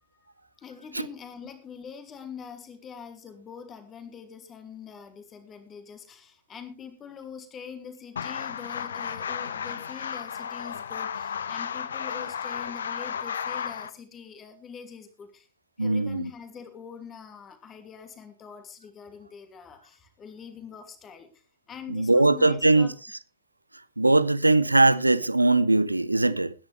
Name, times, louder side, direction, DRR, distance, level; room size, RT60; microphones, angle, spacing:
voice 1, 0.6-15.5 15.8-22.9, left 6 dB, 25° left, 2.7 m, -44 dB
sound 1, 8.2-13.9, left 7 dB, 70° left, 0.7 m, -33 dB
voice 2, 15.8-16.3 21.9-22.9 24.0-26.5, right 2 dB, 85° right, 0.6 m, -21 dB
20.5 x 10.5 x 3.4 m
figure-of-eight pair, 90°, 0 cm